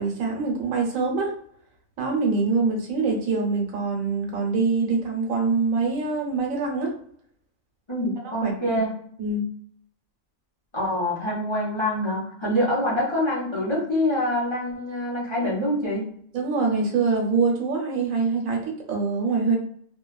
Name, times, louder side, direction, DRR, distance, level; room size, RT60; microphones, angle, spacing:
voice 1, 0.0-1.4 2.0-6.9 8.4-8.5 9.2-9.5 16.3-19.6, right 4 dB, 90° right, 0 dB, 1.2 m, -24 dB
voice 2, 7.9-8.9 10.7-16.0, left 1 dB, 25° left, -7 dB, 0.8 m, -25 dB
2.8 x 2.3 x 2.2 m, 0.63 s
omnidirectional pair, 1.4 m